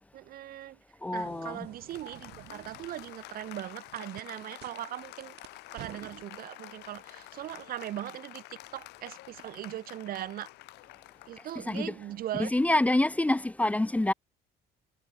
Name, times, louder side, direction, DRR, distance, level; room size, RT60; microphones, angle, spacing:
voice 1, 0.1-0.8 1.1-5.4 5.7-10.5 11.3-12.7, right 13 dB, 60° right, 0.8 m, -39 dB
voice 2, 1.0-1.7 11.6-11.9 12.4-14.1, left 1 dB, 10° left, 0.7 m, -27 dB
sound 1, 1.2-6.3, right 16 dB, 80° right, 2.1 m, -52 dB
Applause, 1.3-13.1, left 19 dB, 90° left, 4.6 m, -49 dB
cardioid pair, 110°, 17 cm